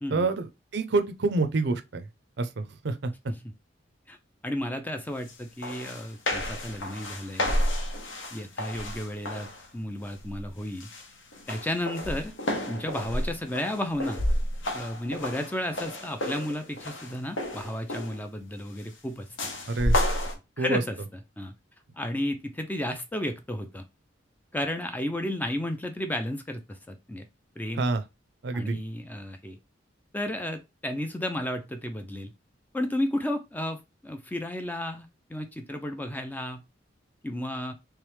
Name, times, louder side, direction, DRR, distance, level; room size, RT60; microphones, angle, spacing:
voice 1, 0.1-2.0 2.4-3.1 19.7-20.0 20.6-20.8 27.8-28.0 28.4-28.8, right 3 dB, 60° right, 0.5 m, -27 dB
voice 2, 4.4-7.5 8.3-10.9 11.5-12.4 12.7-14.3 14.7-19.3 20.6-21.0 21.4-21.5 22.0-23.8 24.5-27.2 27.6-27.9 28.5-29.6 30.1-32.3 32.7-36.6 37.2-37.7, left 1 dB, 10° left, 0.4 m, -33 dB
sound 1, 5.3-5.4 5.6-9.7 10.1-10.5 10.8-18.3 19.4-20.3, left 1 dB, 75° left, 1.0 m, -31 dB
3.4 x 3.2 x 3.1 m
head